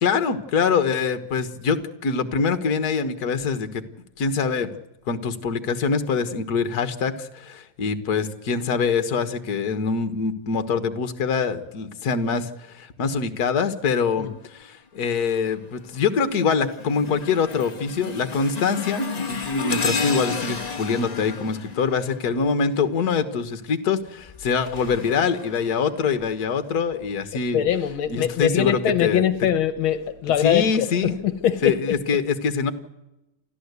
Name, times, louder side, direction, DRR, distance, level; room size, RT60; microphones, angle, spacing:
voice 1, 0.0-3.8 4.2-4.7 5.1-27.6 28.1-29.3 30.4-31.1 31.6-32.7, left 5 dB, 50° left, 1.8 m, -24 dB
sound 1, 15.1-15.5 16.0-22.8 24.1-26.3 26.9-27.1 28.0-28.1, left 4 dB, 25° left, 1.1 m, -32 dB
voice 2, 27.5-32.0, left 9 dB, 75° left, 1.8 m, -22 dB
29.0 x 13.0 x 8.2 m
omnidirectional pair, 2.3 m